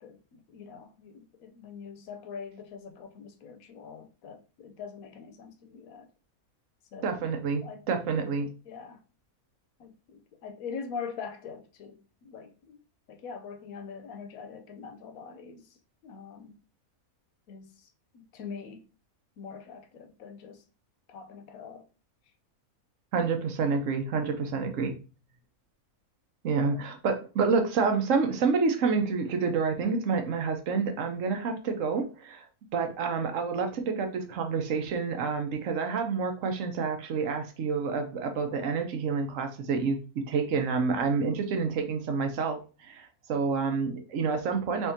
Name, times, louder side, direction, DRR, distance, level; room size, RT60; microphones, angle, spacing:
voice 1, 0.0-6.1 6.9-7.2 7.6-7.9 8.6-9.0 9.8-12.8 13.1-15.7 16.0-16.5 17.5-17.9 18.1-18.8 19.4-20.6 21.1-21.8 26.7-26.8, left 6 dB, 75° left, 1.1 m, -43 dB
voice 2, 7.0-8.5 23.1-24.9 26.4-32.4 32.7-44.9, right 5 dB, 65° right, 1.1 m, -28 dB
3.6 x 3.6 x 2.7 m
omnidirectional pair, 1.5 m